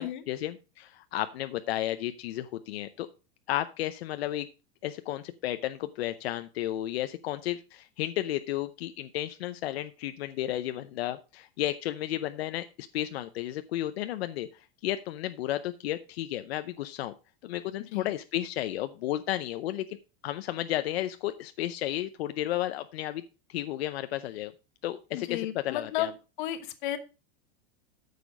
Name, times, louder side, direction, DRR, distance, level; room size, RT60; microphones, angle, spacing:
voice 1, 0.0-3.1 3.5-4.5 4.8-17.1 17.4-20.0 20.2-23.2 23.5-24.5 24.8-26.1, left 13 dB, 80° left, 10 dB, 0.7 m, -33 dB
voice 2, 25.1-26.1 26.4-27.0, left 13 dB, 50° left, 11 dB, 1.2 m, -33 dB
9.3 x 6.8 x 4.8 m, 0.31 s
supercardioid pair, 175°, 31 cm